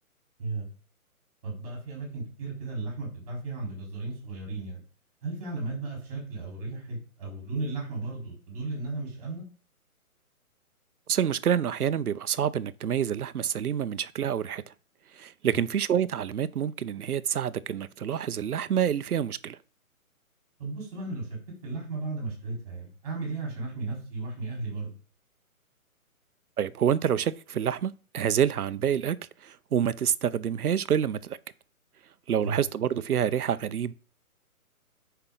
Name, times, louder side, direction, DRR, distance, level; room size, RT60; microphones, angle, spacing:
voice 1, 1.4-4.8 5.2-9.4 20.6-24.9 32.4-32.6, right 3 dB, 25° right, 4.3 m, -35 dB
voice 2, 11.1-14.6 15.2-19.6 26.6-29.2 29.4-31.4 32.3-33.9, right 9 dB, 80° right, 0.8 m, -27 dB
10.0 x 5.7 x 3.9 m
hypercardioid pair, 175°, 44 cm